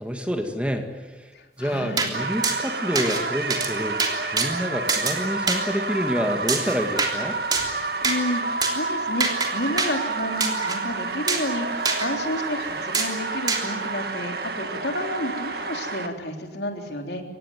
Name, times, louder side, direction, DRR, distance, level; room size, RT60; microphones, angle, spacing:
voice 1, 0.0-1.3 1.6-4.0 4.3-7.4, equal, 5° right, 4 dB, 1.9 m, -28 dB
voice 2, 1.3-2.2 8.0-17.2, left 1 dB, 65° left, 3 dB, 3.6 m, -30 dB
sound 1, 2.0-2.1 2.4-2.6 3.0-3.2 3.5-3.7 4.0-4.5 4.9-5.2 5.5-5.6 6.5-7.1 7.5-7.7 8.0-8.2 8.6-8.7 9.2-9.5 9.8-9.9 10.4-10.8 11.3-11.5 11.9-12.1 12.9-13.1 13.5-13.6, right 4 dB, 20° right, 3.2 m, -24 dB
sound 2, 2.1-16.1, right 3 dB, 55° right, 2.0 m, -30 dB
25.5 x 19.0 x 9.4 m, 1.2 s
head